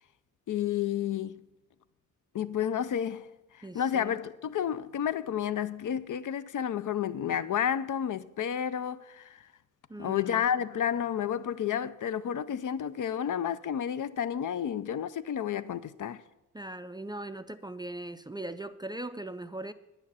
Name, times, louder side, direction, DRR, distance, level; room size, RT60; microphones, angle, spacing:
voice 1, 0.5-1.5 2.3-3.3 3.5-9.5 10.0-16.2, left 9 dB, 70° left, 0.5 m, -31 dB
voice 2, 3.6-4.2 9.9-10.5 16.5-19.7, right 1 dB, 15° right, 0.3 m, -40 dB
9.8 x 9.1 x 5.5 m
wide cardioid pair, 120°, 32 cm